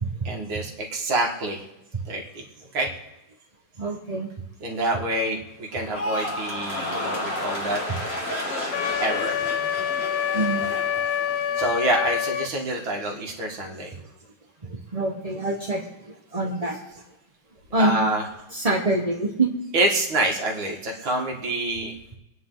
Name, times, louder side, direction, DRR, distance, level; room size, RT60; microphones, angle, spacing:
voice 1, 0.2-1.6 2.1-2.4 2.7-2.9 4.6-7.8 9.0-9.4 11.6-14.0 17.8-18.3 19.7-22.0, right 1 dB, 65° right, 1 dB, 2.6 m, -26 dB
voice 2, 3.8-4.3 10.3-10.6 14.9-16.8 17.7-18.0 18.5-19.5, right 2 dB, 20° right, -2 dB, 1.1 m, -25 dB
sound 1, 5.7-12.1 12.4-12.9, left 1 dB, 30° left, 2.7 m, -32 dB
Wind instrument woodwind instrument, 8.7-12.5, left 9 dB, 85° left, 1.7 m, -26 dB
25.5 x 9.5 x 3.9 m, 0.92 s
omnidirectional pair, 2.3 m